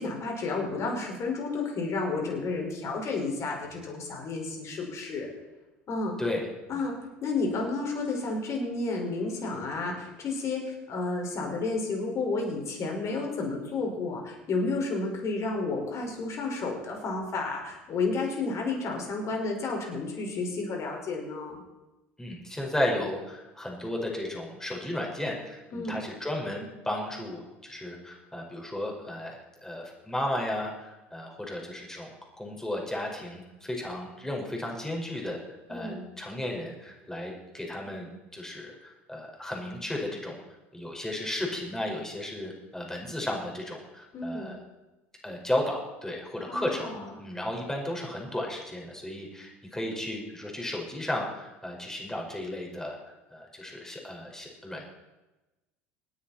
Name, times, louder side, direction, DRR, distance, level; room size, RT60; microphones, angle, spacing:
voice 1, 0.0-5.3 5.9-6.2 6.7-6.9 7.2-21.6 25.7-25.9 35.7-36.0 44.1-44.5 46.5-47.1, left 3 dB, 50° left, 1 dB, 5.6 m, -31 dB
voice 2, 22.2-35.4 35.7-40.4 40.7-44.6 45.2-46.9 47.2-54.8, left 1 dB, 10° left, -1 dB, 5.5 m, -34 dB
27.0 x 9.8 x 4.5 m, 1.1 s
hypercardioid pair, 75°, 7 cm